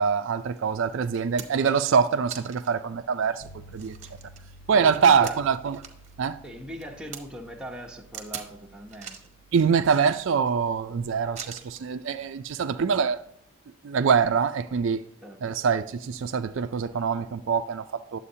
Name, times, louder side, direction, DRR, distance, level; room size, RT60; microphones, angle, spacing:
voice 1, 0.0-4.0 4.7-5.8 6.2-6.4 9.5-13.2 13.8-15.1 15.4-18.2, right 6 dB, 60° right, 0.3 m, -24 dB
sound 1, 0.6-0.7 1.1-1.8 2.3-2.8 3.2-3.3 3.7-6.1 6.4-7.2 8.1-8.5 8.9-9.3 9.8-10.5 11.4-11.9 13.0-13.1, right 7 dB, 30° right, 0.9 m, -42 dB
sound 2, 3.4-13.5, right 1 dB, 85° left, 1.0 m, -53 dB
voice 2, 4.7-5.4 6.4-9.3 15.2-15.5, right 1 dB, 5° right, 0.8 m, -40 dB
9.8 x 7.6 x 2.7 m
head